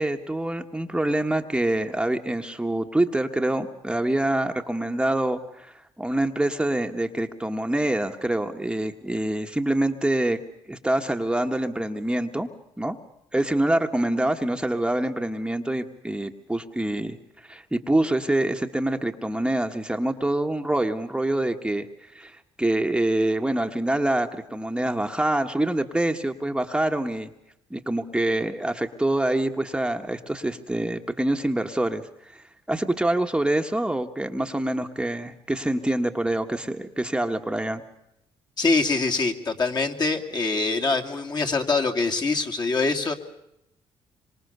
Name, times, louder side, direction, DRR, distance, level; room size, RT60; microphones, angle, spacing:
voice 1, 0.0-10.4 10.7-12.5 12.8-13.0 13.3-27.3 27.7-37.8, right 1 dB, 10° right, 4 dB, 1.4 m, -26 dB
voice 2, 38.6-43.1, left 3 dB, 40° left, 2 dB, 2.7 m, -24 dB
26.0 x 24.5 x 6.8 m, 0.83 s
cardioid pair, 80°, 11 cm